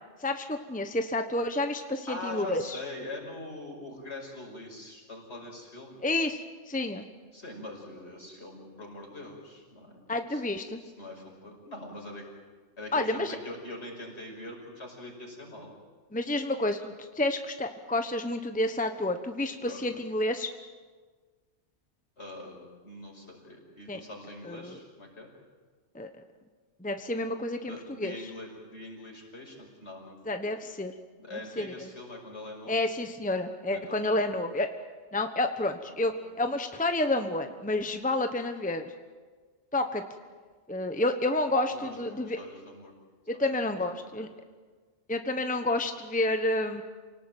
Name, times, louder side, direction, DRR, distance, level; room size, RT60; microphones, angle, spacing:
voice 1, 0.2-2.8 6.0-7.1 10.1-10.8 12.9-13.4 16.1-20.5 23.9-24.0 24.4-24.8 25.9-26.1 26.8-28.2 30.2-30.9 31.6-31.9 32.7-34.7 35.1-38.8 39.7-40.0 40.7-42.4 43.3-44.3 45.1-46.8, left 2 dB, 5° left, 7 dB, 1.1 m, -29 dB
voice 2, 2.1-6.0 7.3-10.0 10.3-10.4 10.8-12.3 12.8-15.7 19.6-20.0 22.2-25.3 27.6-30.2 31.2-32.8 33.7-34.2 35.8-36.1 41.7-42.9 43.3-43.4 44.0-44.2, left 1 dB, 65° left, 0 dB, 6.0 m, -43 dB
28.0 x 18.5 x 9.1 m, 1.5 s
omnidirectional pair, 1.2 m